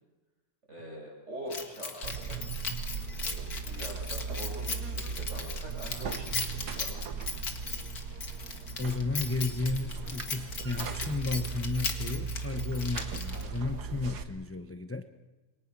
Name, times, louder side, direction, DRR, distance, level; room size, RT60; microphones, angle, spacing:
voice 1, 0.7-2.4 3.2-7.2, right 1 dB, 45° right, -1 dB, 7.1 m, -44 dB
Keys jangling, 1.5-13.6, left 4 dB, 65° left, 2.5 m, -38 dB
Buzz, 2.0-14.2, right 5 dB, 80° right, 1.9 m, -37 dB
voice 2, 8.8-15.0, left 3 dB, 15° left, 7 dB, 0.6 m, -33 dB
28.5 x 23.0 x 6.1 m, 1.2 s
omnidirectional pair, 1.7 m